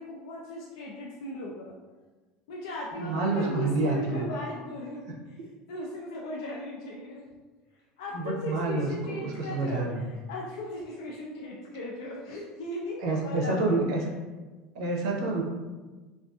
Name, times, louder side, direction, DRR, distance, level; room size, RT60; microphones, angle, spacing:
voice 1, 0.0-1.7 2.5-7.2 8.0-13.8, left 1 dB, 80° left, -3 dB, 0.4 m, -37 dB
voice 2, 3.0-4.3 8.1-10.0 13.0-14.0 14.7-15.4, right 3 dB, 85° right, 0 dB, 0.5 m, -28 dB
2.5 x 2.3 x 2.3 m, 1.3 s
cardioid pair, 170°, 3 cm